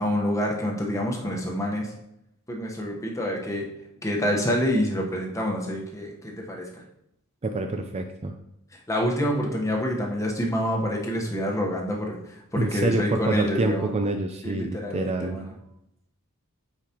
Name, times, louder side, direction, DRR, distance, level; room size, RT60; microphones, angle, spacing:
voice 1, 0.0-1.9 2.5-3.7 4.0-6.8 8.7-13.9 14.4-15.5, equal, 15° left, -1 dB, 1.1 m, -27 dB
voice 2, 7.4-8.3 12.6-15.4, right 2 dB, 30° right, 5 dB, 0.4 m, -27 dB
8.5 x 4.9 x 2.9 m, 0.81 s
head